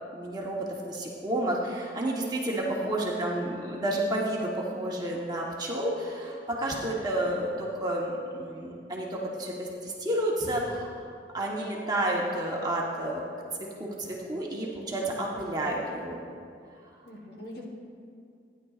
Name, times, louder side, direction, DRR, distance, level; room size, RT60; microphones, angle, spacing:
voice 1, 0.1-10.9 11.3-13.2 13.6-16.2, right 1 dB, 25° right, -3 dB, 1.1 m, -30 dB
voice 2, 2.6-3.1 17.1-17.6, left 1 dB, 60° left, -2 dB, 1.3 m, -44 dB
16.0 x 10.0 x 2.4 m, 2.4 s
head